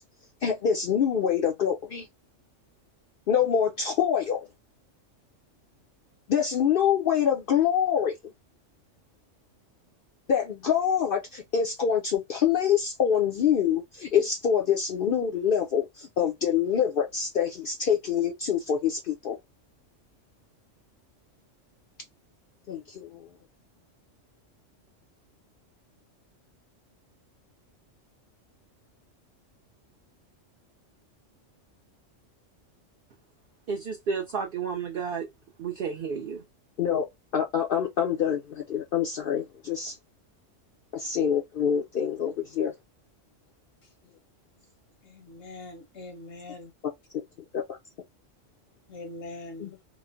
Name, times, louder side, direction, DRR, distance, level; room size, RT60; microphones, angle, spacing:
voice 1, 0.4-2.1 3.3-4.5 6.3-8.2 10.3-19.4 22.7-23.3 36.8-37.1 37.3-40.0 40.9-42.7 47.5-47.8 49.6-49.8, left 8 dB, 60° left, 0.6 m, -25 dB
voice 2, 33.7-35.3 35.6-36.4, right 6 dB, 55° right, 0.7 m, -31 dB
voice 3, 45.0-46.7 48.9-49.7, left 2 dB, 85° left, 1.3 m, -42 dB
3.0 x 2.1 x 2.5 m
omnidirectional pair, 1.3 m